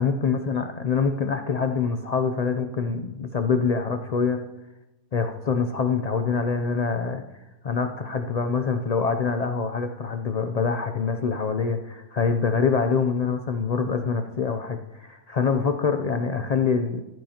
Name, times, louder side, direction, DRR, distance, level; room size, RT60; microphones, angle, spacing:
voice 1, 0.0-4.4 5.1-7.2 7.6-17.0, left 5 dB, 70° left, 6 dB, 0.3 m, -25 dB
15.0 x 9.4 x 2.9 m, 0.99 s
omnidirectional pair, 1.5 m